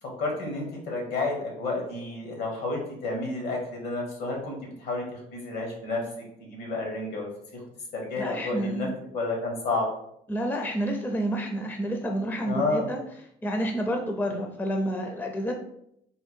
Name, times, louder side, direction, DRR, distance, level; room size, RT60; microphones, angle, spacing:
voice 1, 0.0-7.6 7.9-8.9 9.1-9.9 12.4-12.9, left 2 dB, 75° left, 0 dB, 1.5 m, -31 dB
voice 2, 8.1-8.9 10.3-13.0 13.4-15.5, equal, 10° left, 3 dB, 0.5 m, -29 dB
3.7 x 2.2 x 4.3 m, 0.74 s
cardioid pair, 110°, 17 cm